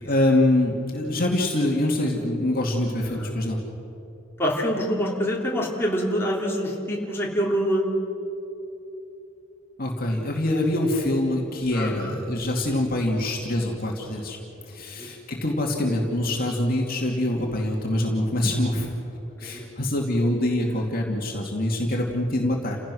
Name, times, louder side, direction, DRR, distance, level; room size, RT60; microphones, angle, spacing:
voice 1, 0.0-3.6 9.8-14.4 14.7-19.0 19.4-22.8, left 1 dB, 45° left, 0 dB, 2.5 m, -24 dB
voice 2, 4.4-8.2 11.7-12.1 14.9-15.1 19.4-19.6, equal, 10° left, -4 dB, 3.4 m, -26 dB
30.0 x 16.5 x 6.4 m, 2.9 s
head